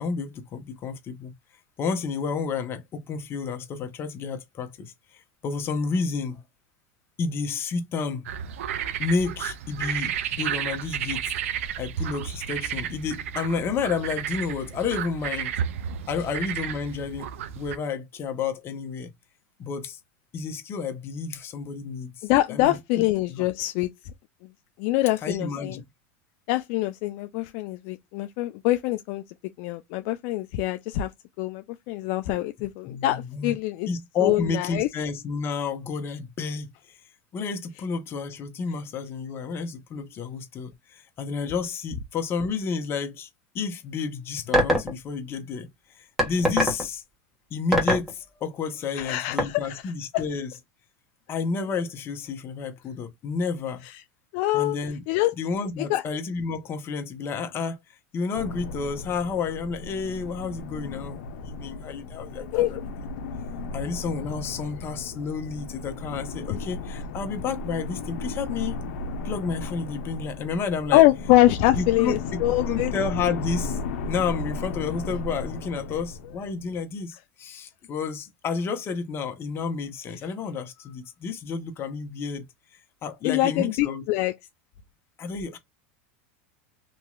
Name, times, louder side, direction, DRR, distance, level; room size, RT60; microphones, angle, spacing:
voice 1, 0.0-1.3 1.8-6.4 7.2-8.3 9.0-11.3 11.8-15.5 16.1-19.1 19.6-20.0 20.3-22.8 23.3-23.4 25.2-25.8 32.9-33.6 33.9-37.0 37.3-43.3 43.5-45.7 45.9-47.0 47.5-50.5 51.3-53.8 54.5-55.0 55.4-57.8 58.1-62.9 63.7-68.8 69.2-71.0 71.8-72.4 72.7-73.8 74.1-82.4 83.0-84.0 85.2-85.6, left 5 dB, 35° left, 0.9 m, -31 dB
sound 1, 8.3-17.8, right 9 dB, 85° right, 0.5 m, -32 dB
voice 2, 22.2-23.9 24.8-25.8 26.5-29.2 29.6-31.1 31.4-33.9 34.2-34.9 48.9-50.2 54.3-54.8 55.1-55.3 55.8-56.0 62.5-62.7 70.9-72.9 83.2-84.3, left 16 dB, 60° left, 0.4 m, -24 dB
sound 2, 44.5-44.9 46.2-46.8 47.7-48.1 49.4-49.5, equal, 5° right, 1.4 m, -20 dB
sound 3, 58.3-76.8, left 3 dB, 75° left, 0.8 m, -35 dB
3.0 x 2.8 x 2.3 m
supercardioid pair, 125°, 7 cm